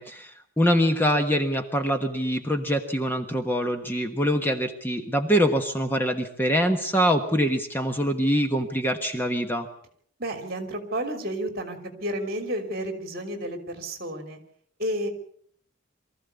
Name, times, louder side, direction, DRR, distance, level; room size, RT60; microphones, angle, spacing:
voice 1, 0.0-9.7, equal, 10° left, 5 dB, 1.3 m, -24 dB
voice 2, 10.2-14.4 14.8-15.1, right 1 dB, 45° right, 7 dB, 3.3 m, -31 dB
23.5 x 14.5 x 8.2 m, 0.63 s
head